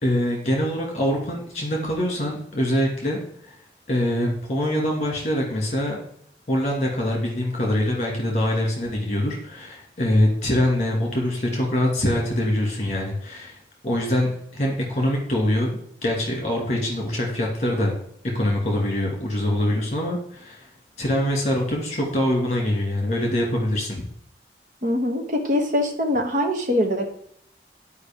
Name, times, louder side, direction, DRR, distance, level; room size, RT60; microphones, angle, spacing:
voice 1, 0.0-3.6 3.9-6.0 6.5-13.6 13.8-17.9 18.3-20.7 21.0-24.0, left 1 dB, 40° left, -1 dB, 2.2 m, -24 dB
voice 2, 24.8-27.1, left 1 dB, 45° right, 3 dB, 1.2 m, -23 dB
10.0 x 5.1 x 3.6 m, 0.66 s
head